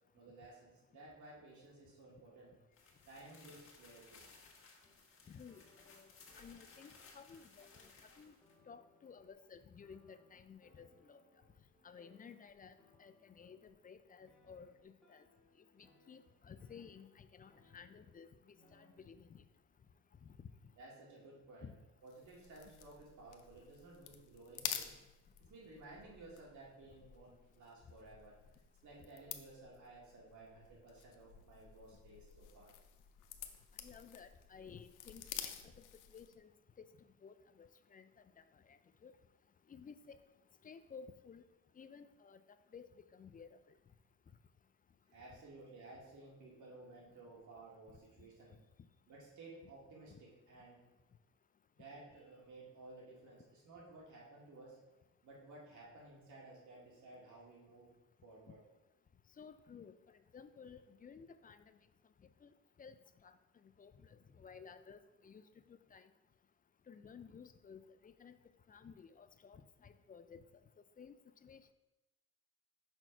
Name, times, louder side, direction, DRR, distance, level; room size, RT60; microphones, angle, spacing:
voice 1, 0.1-2.6 3.1-4.3 8.1-8.2 20.8-24.9 25.5-28.4 28.8-32.7 45.1-48.6 49.1-50.8 51.8-54.8 55.2-57.9 58.2-58.6, right 2 dB, 75° right, -4 dB, 2.3 m, -56 dB
sound 1, 2.7-8.6, left 4 dB, 45° left, 1.4 m, -61 dB
sound 2, 4.8-5.1 5.5-9.3 9.8-13.8 14.2-18.1 18.5-19.0, left 1 dB, 5° left, 1.6 m, -70 dB
voice 2, 5.3-7.7 8.2-8.3 8.7-11.2 11.8-15.2 15.8-19.4 20.2-20.3 21.6-21.7 33.8-35.8 36.1-36.5 36.8-36.9 37.2-38.1 38.4-39.1 39.7-40.2 40.6-41.4 41.8-42.4 42.7-43.6 50.1-50.2 59.4-59.9 60.3-61.8 62.4-62.5 62.8-63.0 63.2-63.3 63.8-65.4 65.7-66.1 66.9-68.4 68.7-70.5 71.0-71.2 71.4-71.7, left 6 dB, 30° left, 11 dB, 0.4 m, -55 dB
sound 3, 22.1-36.4, left 10 dB, 85° left, 0.6 m, -50 dB
6.0 x 4.4 x 4.5 m, 0.98 s
cardioid pair, 90°, 30 cm